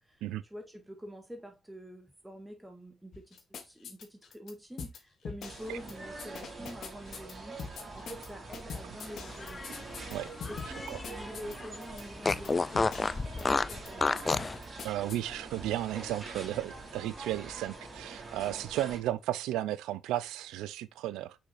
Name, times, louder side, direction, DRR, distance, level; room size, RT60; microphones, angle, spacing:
voice 1, 0.0-7.6 7.9-9.7 10.5-14.3, equal, 5° right, 1.9 m, -46 dB
sound 1, 3.1-4.5 4.8-5.0 5.2-5.9 6.2-7.3 7.6-8.3 8.5-10.1 10.4-12.0 12.3-12.5 12.7-13.4 13.7-13.9 14.2-15.2, left 6 dB, 65° left, 1.8 m, -42 dB
sound 2, 5.4-19.0, right 3 dB, 40° right, 3.8 m, -45 dB
Fart, 9.2-11.3 11.6-11.7 12.2-14.6, left 3 dB, 30° left, 0.4 m, -30 dB
voice 2, 14.8-21.4, right 13 dB, 85° right, 0.5 m, -34 dB
6.1 x 6.0 x 2.6 m
supercardioid pair, 65°, 0 cm